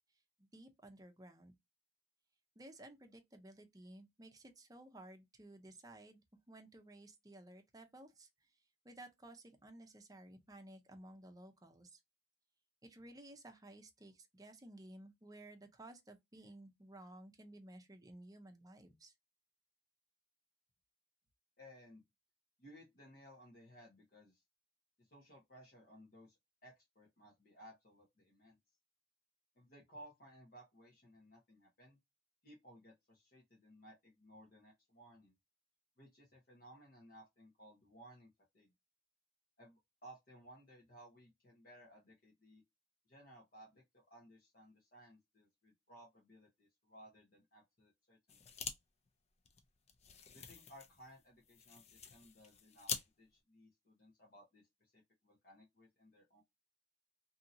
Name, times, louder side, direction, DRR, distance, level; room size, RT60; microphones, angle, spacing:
voice 1, 0.4-1.6 2.6-8.3 8.8-12.0 12.8-19.1, right 1 dB, 20° right, 0.6 m, -56 dB
voice 2, 21.6-22.0 22.6-24.4 25.1-26.3 26.6-28.6 29.6-32.0 32.4-35.3 36.0-38.3 38.5-38.7 39.6-42.6 43.1-48.4 50.3-56.4, equal, 55° left, 1.0 m, -60 dB
sound 1, 48.3-48.8 49.1-49.2 49.5-53.1, left 6 dB, 35° left, 0.5 m, -46 dB
2.7 x 2.7 x 2.6 m
head